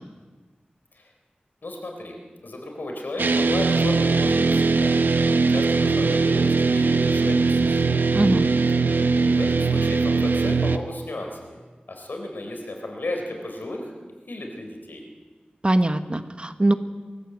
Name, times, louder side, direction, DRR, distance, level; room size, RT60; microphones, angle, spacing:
voice 1, 1.6-2.2 2.4-4.9 5.5-8.0 9.2-11.6 11.9-13.9 14.3-15.0, left 1 dB, 80° left, 3 dB, 4.3 m, -34 dB
sound 1, 3.2-10.8, right 4 dB, 85° right, 0.9 m, -20 dB
voice 2, 8.1-8.5 15.6-16.7, right 1 dB, 35° right, 9 dB, 1.2 m, -21 dB
22.0 x 14.5 x 8.2 m, 1.4 s
wide cardioid pair, 70°, 3 cm